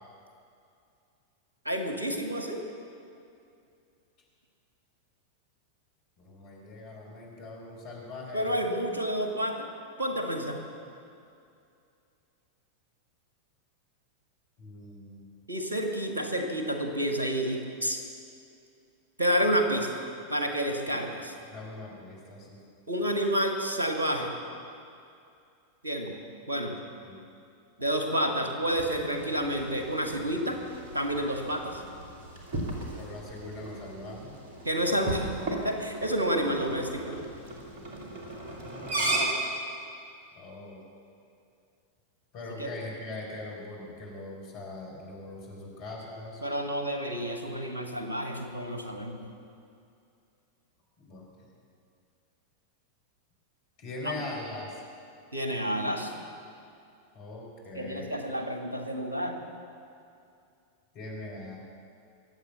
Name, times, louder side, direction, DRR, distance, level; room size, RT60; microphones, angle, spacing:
voice 1, 1.7-2.6 8.3-9.7 10.0-10.6 15.5-18.0 19.2-19.9 20.3-21.3 22.9-24.3 25.8-26.2 26.5-26.8 27.8-30.6 30.9-31.8 34.6-37.2 42.6-42.7 46.4-49.2 54.0-54.2 55.3-56.1 57.7-59.4, equal, 75° right, 4 dB, 1.9 m, -29 dB
voice 2, 6.2-8.7 14.6-15.4 20.9-21.0 21.5-22.6 27.0-27.2 32.9-34.3 40.3-40.8 42.3-46.4 51.0-51.5 53.8-54.8 57.1-58.1 60.9-61.6, left 2 dB, 45° left, -2 dB, 4.7 m, -41 dB
sound 1, 28.7-39.3, right 2 dB, 50° right, 3.0 m, -37 dB
23.5 x 8.2 x 7.2 m, 2.5 s
figure-of-eight pair, 90°, 0 cm